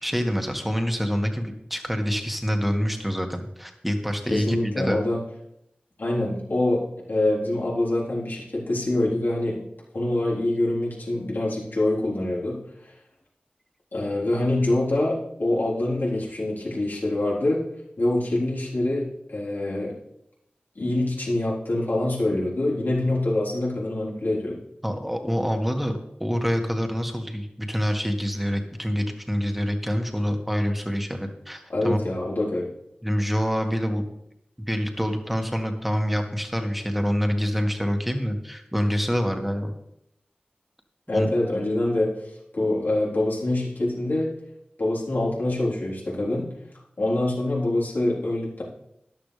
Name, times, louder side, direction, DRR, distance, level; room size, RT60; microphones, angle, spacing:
voice 1, 0.0-5.0 24.8-32.0 33.0-34.0 34.7-39.7 41.1-41.3, equal, 5° right, 4 dB, 1.8 m, -26 dB
voice 2, 4.3-5.2 6.0-6.8 7.1-9.6 9.9-12.9 13.9-17.6 18.0-19.9 20.8-24.6 31.7-32.7 41.1-42.1 42.5-44.3 44.8-46.5 47.0-48.6, left 1 dB, 75° left, -5 dB, 3.8 m, -25 dB
13.5 x 11.5 x 3.3 m, 0.77 s
wide cardioid pair, 50°, 3 cm